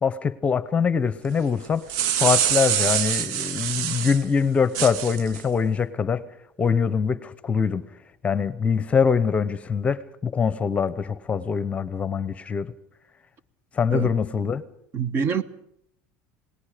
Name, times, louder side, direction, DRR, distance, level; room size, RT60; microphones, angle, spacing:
voice 1, 0.0-1.9 2.2-6.3 6.6-7.8 8.2-12.7 13.7-14.6, left 6 dB, 20° left, 0.9 m, -23 dB
sound 1, 1.6-4.2 4.7-5.4, right 10 dB, 70° right, 0.8 m, -24 dB
voice 2, 14.9-15.4, right 6 dB, 40° right, 1.1 m, -25 dB
28.0 x 19.0 x 5.1 m
cardioid pair, 140°, 6 cm